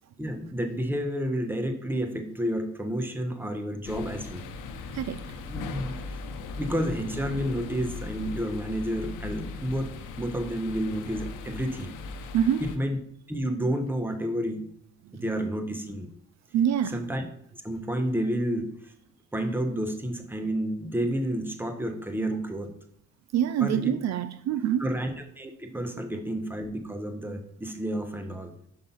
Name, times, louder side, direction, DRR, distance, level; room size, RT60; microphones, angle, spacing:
voice 1, 0.2-4.4 5.4-6.0 6.6-9.9 10.2-11.9 12.6-13.0 13.3-14.7 15.2-16.1 16.9-17.2 17.6-18.9 19.3-22.7 23.6-23.9 24.8-28.5, equal, 5° right, 6 dB, 1.1 m, -30 dB
sound 1, 3.8-12.8, left 4 dB, 90° left, 0.8 m, -38 dB
voice 2, 16.5-17.0 23.3-24.9, right 9 dB, 60° right, 12 dB, 0.5 m, -25 dB
5.8 x 5.4 x 5.5 m, 0.68 s
cardioid pair, 90°, 30 cm